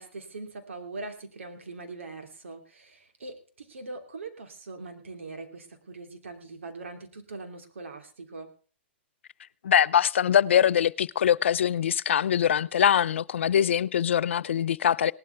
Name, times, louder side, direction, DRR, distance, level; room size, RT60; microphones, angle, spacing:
voice 1, 0.0-8.5 13.5-13.6, right 3 dB, 85° right, 2.9 m, -41 dB
voice 2, 9.6-15.1, left 9 dB, 75° left, 0.5 m, -23 dB
18.5 x 12.5 x 3.4 m
hypercardioid pair, 135°, 7 cm